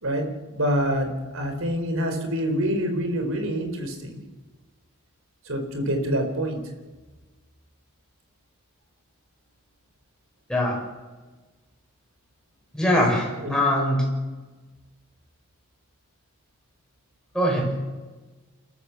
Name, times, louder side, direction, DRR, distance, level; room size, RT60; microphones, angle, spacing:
voice 1, 0.0-4.2 5.5-6.6 13.4-13.6, equal, 65° right, 5 dB, 4.1 m, -26 dB
voice 2, 12.7-14.1 17.3-17.8, equal, 5° left, -3 dB, 6.3 m, -22 dB
28.5 x 14.0 x 7.0 m, 1.3 s
head